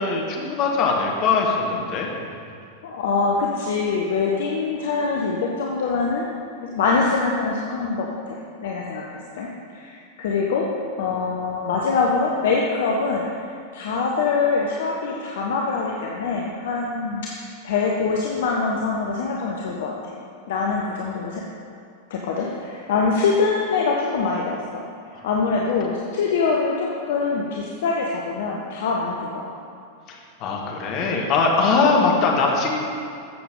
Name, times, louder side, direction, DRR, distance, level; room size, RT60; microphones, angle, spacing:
voice 1, 0.0-2.1 30.1-32.8, left 4 dB, 40° left, 0 dB, 1.7 m, -21 dB
voice 2, 2.8-6.3 6.7-10.7 11.0-13.4 13.7-20.1 20.5-21.4 22.1-24.8 25.1-29.6, left 4 dB, 55° left, -1 dB, 0.9 m, -24 dB
14.0 x 6.8 x 3.9 m, 2.4 s
figure-of-eight pair, 90°, 0 cm